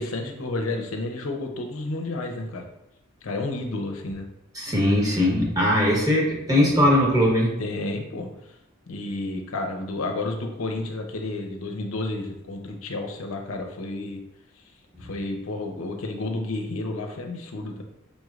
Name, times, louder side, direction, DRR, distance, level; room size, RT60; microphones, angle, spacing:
voice 1, 0.0-2.7 3.2-4.3 7.6-8.3 8.9-14.2 15.0-17.8, left 2 dB, 85° left, 3 dB, 0.6 m, -31 dB
voice 2, 4.5-7.5, left 1 dB, 15° right, -4 dB, 1.1 m, -20 dB
5.2 x 3.1 x 2.4 m, 0.84 s
head